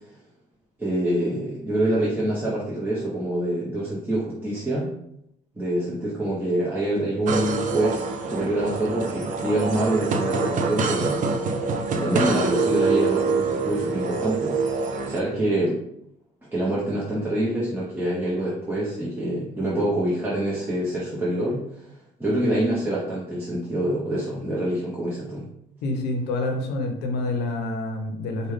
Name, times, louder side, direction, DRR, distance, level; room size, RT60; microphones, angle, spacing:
voice 1, 0.8-4.9 5.5-11.6 11.9-15.8 16.5-21.9 22.2-25.5, right 1 dB, 10° right, -7 dB, 0.9 m, -26 dB
sound 1, 7.3-15.2, right 4 dB, 50° right, 0.5 m, -25 dB
voice 2, 25.8-28.5, left 2 dB, 80° left, 4 dB, 0.7 m, -27 dB
5.0 x 2.3 x 3.3 m, 0.76 s
cardioid pair, 110°, 17 cm